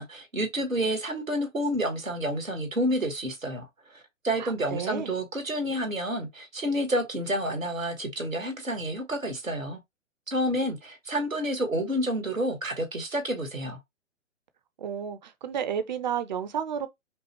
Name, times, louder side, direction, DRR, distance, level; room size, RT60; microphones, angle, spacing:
voice 1, 0.0-3.7 3.9-9.8 10.3-13.8, equal, 85° right, 1.4 m, -29 dB
voice 2, 4.4-5.1 14.8-16.9, right 8 dB, 35° right, 0.6 m, -31 dB
5.2 x 2.1 x 3.0 m
figure-of-eight pair, 125°, 39 cm